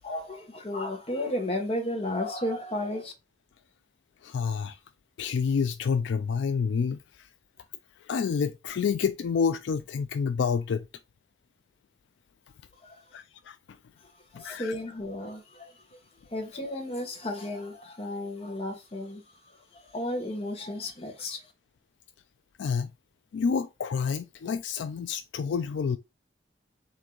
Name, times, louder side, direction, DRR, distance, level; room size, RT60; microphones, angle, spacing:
voice 1, 0.0-3.1 12.8-13.0 14.0-16.0 16.3-19.2 19.5-21.5, left 1 dB, 30° left, 1.0 m, -34 dB
voice 2, 4.2-4.8 5.2-7.3 8.0-10.8 13.1-13.6 14.3-14.7 22.6-22.9 23.3-26.0, left 6 dB, 75° left, 0.3 m, -28 dB
3.8 x 2.7 x 4.4 m
head